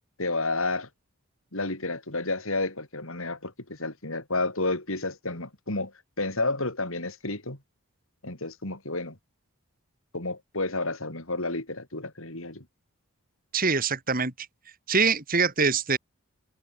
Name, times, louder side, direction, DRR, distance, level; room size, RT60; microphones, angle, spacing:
voice 1, 0.2-0.9 1.5-5.9 6.2-7.6 8.2-9.2 10.1-12.6, left 2 dB, 65° left, 5.0 m, -31 dB
voice 2, 13.5-14.3 14.9-16.0, right 5 dB, 40° right, 3.1 m, -24 dB
head